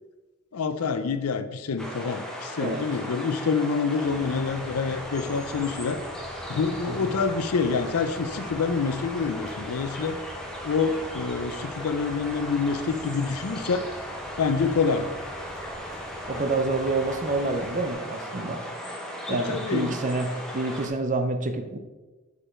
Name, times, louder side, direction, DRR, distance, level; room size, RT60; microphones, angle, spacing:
voice 1, 0.5-6.0 6.5-10.2 10.6-13.9 14.4-15.1 16.3-16.5 19.3-19.9, left 5 dB, 70° left, 11 dB, 0.5 m, -27 dB
sound 1, 1.8-20.9, equal, 5° left, 0.9 m, -37 dB
sound 2, 4.0-17.9, equal, 15° right, 1.2 m, -46 dB
voice 2, 6.9-7.2 16.3-18.6 19.3-21.8, right 2 dB, 35° right, 8 dB, 0.6 m, -28 dB
6.7 x 5.0 x 4.3 m, 1.2 s
head